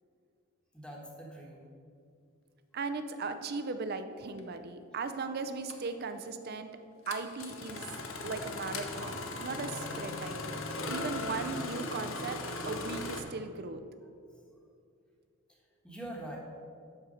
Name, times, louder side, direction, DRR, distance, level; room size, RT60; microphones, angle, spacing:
voice 1, 0.7-1.7 14.3-14.6 15.5-16.4, right 1 dB, 5° left, -2 dB, 1.3 m, -46 dB
voice 2, 2.7-6.7 7.1-7.9 8.2-10.6 10.9-13.8, right 4 dB, 45° right, 9 dB, 0.5 m, -38 dB
Engine starting, 4.4-4.5 5.7-5.9 7.1-13.2, left 2 dB, 70° left, 0.8 m, -38 dB
12.0 x 4.5 x 5.0 m, 2.4 s
head